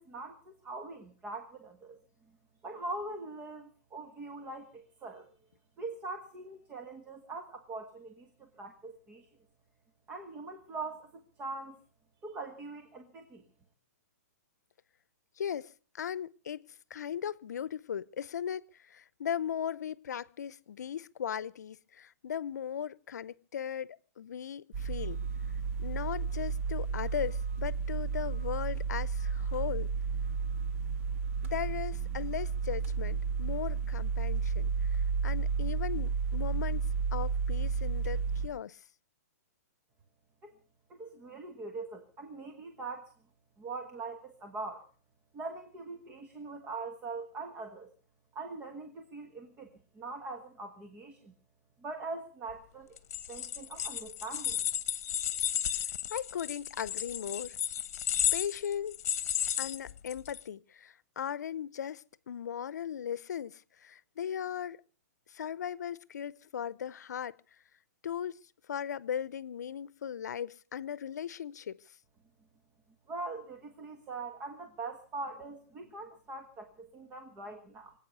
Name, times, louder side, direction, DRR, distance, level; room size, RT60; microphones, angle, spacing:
voice 1, 0.0-2.0 2.6-5.3 5.8-9.3 10.1-11.1 11.4-11.8 12.2-13.4 40.4-40.5 40.9-43.1 43.6-44.8 45.3-47.9 48.3-51.3 51.8-53.0 53.3-54.6 73.1-77.9, right 3 dB, 15° right, 1.4 m, -42 dB
voice 2, 15.4-16.6 16.9-25.2 25.8-29.9 31.5-38.8 56.1-57.6 58.3-59.0 59.6-64.8 65.3-67.4 68.0-68.4 68.7-71.8, left 8 dB, 80° left, 0.7 m, -38 dB
sound 1, 24.7-38.5, right 5 dB, 45° right, 2.3 m, -32 dB
sound 2, 53.0-60.4, left 10 dB, 55° left, 1.3 m, -33 dB
24.5 x 8.7 x 6.8 m
hypercardioid pair, 160°, 9 cm